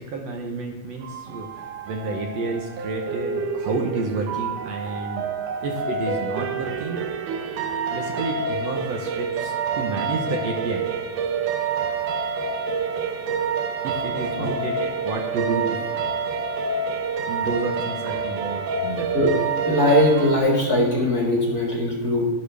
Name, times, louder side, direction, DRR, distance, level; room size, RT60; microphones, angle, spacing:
voice 1, 0.0-5.3 5.6-7.1 7.9-10.8 13.8-15.9 17.3-19.1, right 3 dB, 65° right, 1 dB, 2.0 m, -30 dB
sound 1, 1.0-20.4, right 5 dB, 85° right, 2.4 m, -28 dB
voice 2, 19.7-22.3, left 1 dB, 35° left, -3 dB, 2.2 m, -20 dB
12.0 x 11.5 x 3.4 m, 1.2 s
omnidirectional pair, 3.6 m